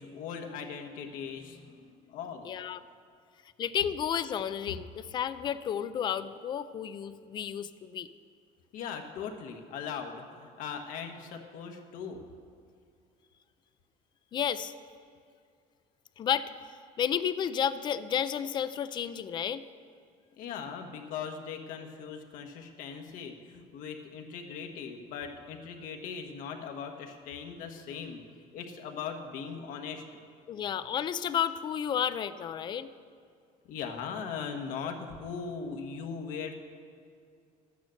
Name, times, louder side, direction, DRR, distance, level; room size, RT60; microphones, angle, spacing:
voice 1, 0.0-2.5 8.7-12.2 20.4-28.2 28.5-30.0 33.7-36.5, left 6 dB, 65° left, 3 dB, 1.3 m, -39 dB
voice 2, 2.5-2.8 3.6-8.1 14.3-14.7 16.2-16.5 17.0-19.6 30.5-32.9, left 9 dB, 30° left, 14 dB, 0.4 m, -31 dB
12.5 x 9.4 x 6.4 m, 2.3 s
cardioid pair, 170°, 15 cm